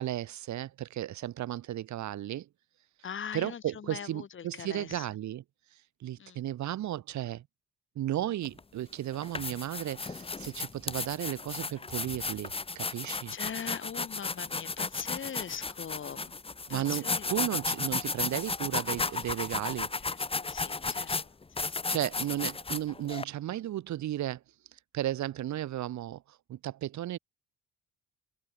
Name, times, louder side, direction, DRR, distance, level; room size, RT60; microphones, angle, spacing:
voice 1, 0.0-2.5 3.3-5.4 6.0-7.4 7.9-13.3 16.7-19.9 21.9-24.4 24.9-26.2 26.5-27.2, right 13 dB, 70° right, 1.1 m, -34 dB
voice 2, 3.0-5.1 6.2-6.4 13.3-16.4 16.7-17.3 20.0-21.3 21.6-21.8, left 8 dB, 40° left, 1.1 m, -41 dB
sound 1, 8.4-8.6 9.1-23.2, left 4 dB, 20° left, 1.0 m, -34 dB
cardioid pair, 90°, 30 cm